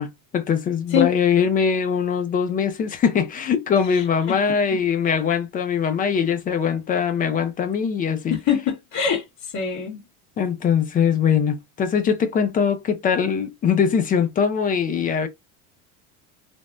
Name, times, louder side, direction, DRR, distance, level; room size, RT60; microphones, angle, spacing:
voice 1, 0.0-8.3 10.4-15.3, left 7 dB, 20° left, 0.4 m, -22 dB
voice 2, 3.9-4.4 4.7-4.8 8.3-10.0, left 7 dB, 45° left, 1.7 m, -24 dB
3.4 x 2.1 x 2.4 m
supercardioid pair, 135°, 40 cm